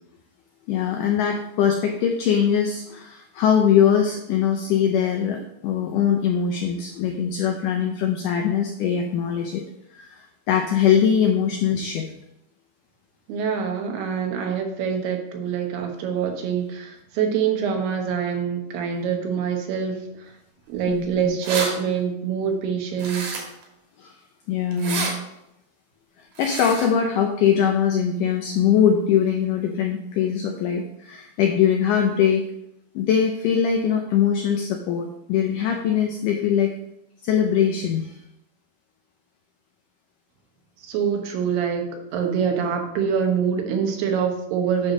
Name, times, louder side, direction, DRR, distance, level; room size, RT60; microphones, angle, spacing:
voice 1, 0.7-9.6 9.9-12.1 20.9-21.4 24.0-24.2 24.5-25.1 26.4-32.4 32.9-36.7 37.2-38.2, left 8 dB, 85° left, 3 dB, 1.8 m, -22 dB
voice 2, 13.3-19.9 20.2-20.3 20.7-23.4 40.8-44.9, right 7 dB, 85° right, 3 dB, 3.1 m, -25 dB
sound 1, 21.0-21.1 21.2-21.7 23.0-23.6 24.7-25.1 26.3-26.9, right 4 dB, 55° right, 2.5 m, -29 dB
9.1 x 3.2 x 6.3 m, 0.81 s
omnidirectional pair, 4.5 m